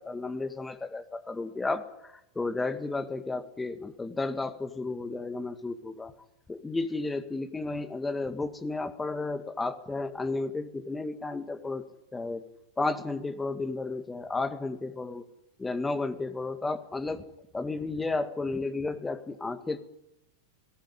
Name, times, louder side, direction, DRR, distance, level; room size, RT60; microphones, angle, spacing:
voice 1, 0.0-6.1 6.5-11.8 12.1-12.4 12.8-15.2 15.6-17.2 17.5-19.8, left 3 dB, 10° left, 9 dB, 1.8 m, -33 dB
19.5 x 17.5 x 9.7 m, 0.82 s
figure-of-eight pair, 90°, 0 cm